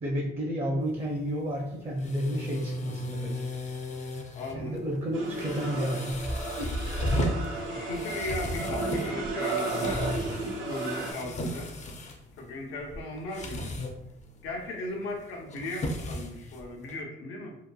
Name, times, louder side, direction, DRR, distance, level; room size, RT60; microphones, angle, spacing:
voice 1, 0.0-3.4 4.5-6.2 6.6-7.1, equal, 30° right, -2 dB, 0.5 m, -31 dB
sound 1, 0.8-17.0, left 1 dB, 35° left, 0.4 m, -36 dB
voice 2, 4.4-4.7 7.7-10.0 10.6-11.7 12.4-13.7 14.4-17.6, left 2 dB, 90° left, 0 dB, 0.6 m, -37 dB
sound 2, 5.1-11.1, right 3 dB, 85° right, 0.7 m, -33 dB
2.8 x 2.1 x 2.2 m, 0.81 s
cardioid pair, 90°, 20 cm